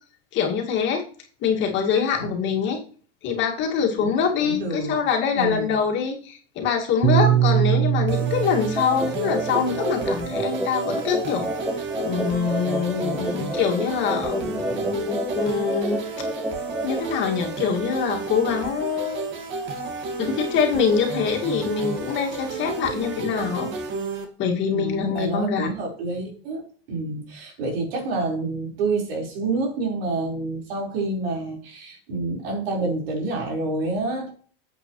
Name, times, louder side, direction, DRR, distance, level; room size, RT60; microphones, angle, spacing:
voice 1, 0.3-1.0 1.4-2.8 3.2-11.5 12.0-16.0 16.8-19.3 20.2-23.7 24.4-25.7, left 6 dB, 40° left, 1 dB, 2.2 m, -24 dB
voice 2, 4.4-5.0 5.3-5.7 7.2-7.4 24.7-26.6 26.9-34.3, right 3 dB, 75° right, 0 dB, 4.6 m, -28 dB
Piano, 7.0-11.5, right 10 dB, 20° right, 1.2 m, -24 dB
sound 1, 8.1-24.2, right 4 dB, 40° right, 2.0 m, -32 dB
sound 2, 8.8-17.0, right 1 dB, 5° right, 0.4 m, -30 dB
10.5 x 8.2 x 3.2 m, 0.42 s
supercardioid pair, 135°, 29 cm